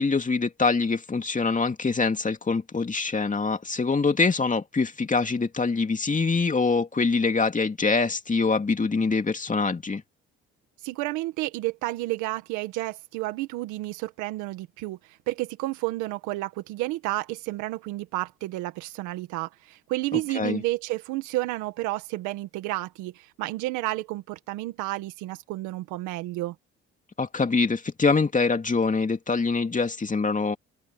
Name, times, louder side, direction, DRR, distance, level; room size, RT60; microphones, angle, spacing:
voice 1, 0.0-10.0 20.1-20.6 27.2-30.6, left 4 dB, 25° left, 2.6 m, -24 dB
voice 2, 10.8-15.0 15.3-26.6, right 18 dB, 90° right, 1.8 m, -31 dB
open air
supercardioid pair, 70°, 29 cm